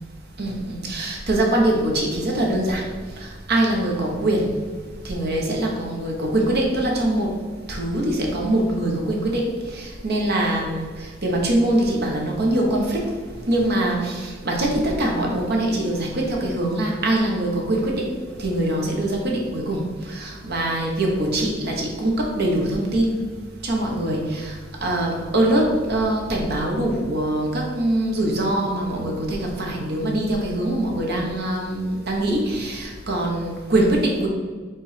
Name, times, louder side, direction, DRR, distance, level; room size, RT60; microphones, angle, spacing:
voice 1, 0.4-2.8 3.2-4.5 5.0-7.3 7.7-13.0 13.5-18.1 18.4-23.2 23.6-24.5 24.8-34.3, right 1 dB, 55° right, -1 dB, 1.2 m, -23 dB
5.7 x 3.6 x 5.1 m, 1.4 s
head